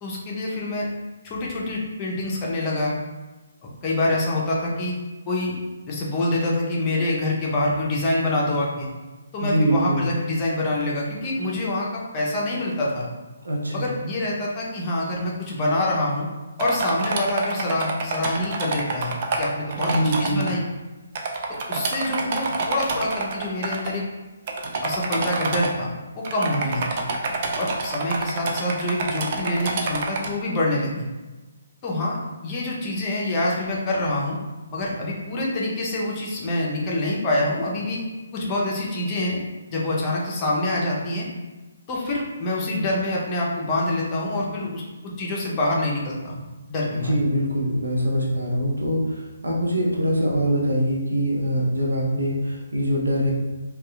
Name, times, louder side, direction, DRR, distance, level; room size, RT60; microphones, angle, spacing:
voice 1, 0.0-0.9 1.2-2.9 3.6-4.9 5.3-5.6 5.9-8.9 9.3-13.1 13.7-16.3 16.6-20.6 21.7-24.0 24.8-27.0 27.6-31.1 31.8-32.2 32.4-34.4 34.7-38.0 38.3-39.4 39.7-41.3 41.9-47.1, left 1 dB, 25° left, -4 dB, 0.6 m, -26 dB
voice 2, 9.4-10.1 13.4-13.9 19.8-20.5 46.8-53.3, equal, 85° right, -3 dB, 0.7 m, -23 dB
sound 1, 16.6-20.5 21.1-23.9 24.5-25.7 26.2-30.3, right 3 dB, 40° right, 0.3 m, -27 dB
2.7 x 2.3 x 2.3 m, 1.2 s
figure-of-eight pair, 145°, 0 cm